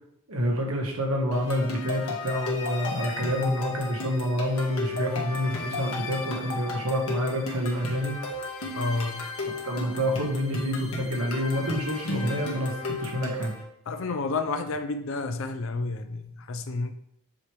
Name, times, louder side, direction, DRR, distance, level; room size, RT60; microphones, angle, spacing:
voice 1, 0.3-8.2 9.6-13.6, equal, 80° right, 1.6 m, -28 dB
sound 1, 1.3-13.6, left 2 dB, 85° left, 1.6 m, -34 dB
voice 2, 8.7-9.3 13.9-16.9, left 3 dB, 65° left, 0.5 m, -30 dB
8.3 x 3.3 x 4.7 m
head